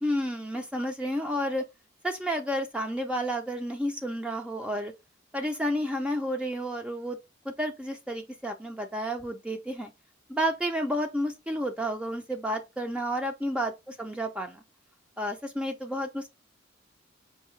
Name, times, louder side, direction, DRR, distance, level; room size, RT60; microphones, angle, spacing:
voice 1, 0.0-1.7 2.0-4.9 5.3-7.2 7.4-9.9 10.3-14.6 15.2-16.3, equal, 5° right, 0.5 m, -31 dB
4.6 x 2.7 x 3.1 m
head